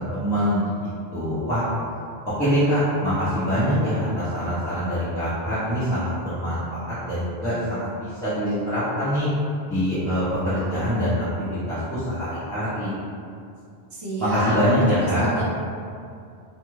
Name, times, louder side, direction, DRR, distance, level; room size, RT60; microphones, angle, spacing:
voice 1, 0.0-1.6 2.4-9.3 9.7-11.3 11.7-12.9 14.2-15.3, equal, 5° left, -17 dB, 0.6 m, -24 dB
voice 2, 13.9-15.4, right 1 dB, 45° right, -6 dB, 0.3 m, -30 dB
2.4 x 2.4 x 3.0 m, 2.4 s
omnidirectional pair, 1.1 m